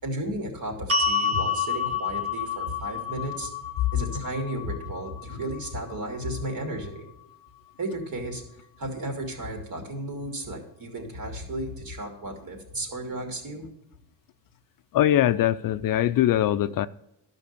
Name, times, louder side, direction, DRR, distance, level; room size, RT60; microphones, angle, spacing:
voice 1, 0.0-3.5 3.9-7.0 7.8-8.4 8.8-13.7, right 1 dB, 55° right, 2.8 m, -33 dB
sound 1, 0.9-7.1, left 5 dB, 35° right, 1.2 m, -30 dB
voice 2, 14.9-16.9, left 12 dB, 55° left, 0.5 m, -22 dB
12.0 x 5.3 x 6.7 m
cardioid pair, 105°, 41 cm